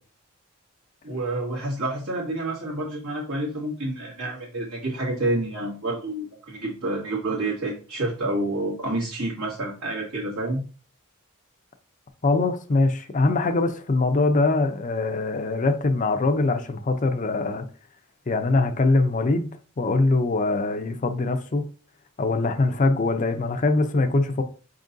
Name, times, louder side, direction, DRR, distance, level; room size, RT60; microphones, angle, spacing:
voice 1, 1.0-10.6, right 2 dB, 70° right, 1.8 m, -28 dB
voice 2, 12.2-17.6 18.3-21.6 22.2-24.4, left 3 dB, 35° left, 0.5 m, -23 dB
5.4 x 3.7 x 2.6 m
head